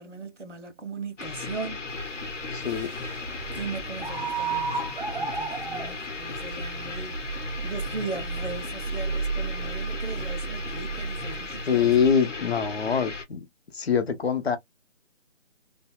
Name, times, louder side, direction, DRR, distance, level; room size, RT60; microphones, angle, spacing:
voice 1, 0.0-1.9 3.5-12.1, right 4 dB, 85° right, 1.0 m, -38 dB
sound 1, 1.2-13.2, left 4 dB, 90° left, 0.9 m, -36 dB
sound 2, 1.9-12.1, right 5 dB, 45° right, 0.5 m, -34 dB
voice 2, 2.5-2.9 11.7-13.5 13.7-14.6, left 7 dB, 60° left, 0.7 m, -24 dB
sound 3, 2.6-5.7 6.0-6.1, equal, 10° left, 0.6 m, -47 dB
2.7 x 2.2 x 2.2 m
figure-of-eight pair, 155°, 36 cm